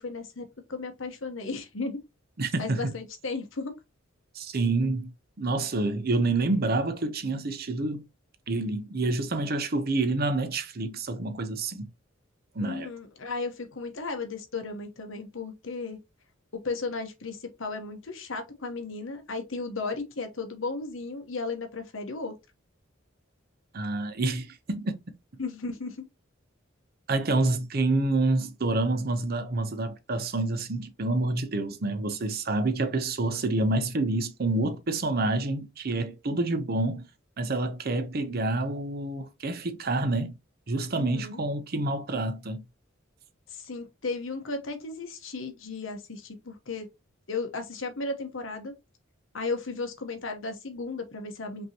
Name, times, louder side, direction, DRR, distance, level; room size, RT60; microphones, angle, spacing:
voice 1, 0.0-2.0 2.6-3.7 12.6-16.0 16.5-22.4 25.4-26.0 40.9-41.4 43.5-46.9 47.3-48.7 49.3-51.7, left 3 dB, 70° left, 1.1 m, -35 dB
voice 2, 2.4-2.9 4.3-5.1 5.4-8.0 8.5-11.9 12.5-12.9 23.7-24.9 27.1-37.1 37.4-40.3 40.7-42.6, right 2 dB, 50° right, 0.7 m, -28 dB
5.3 x 2.9 x 2.9 m
head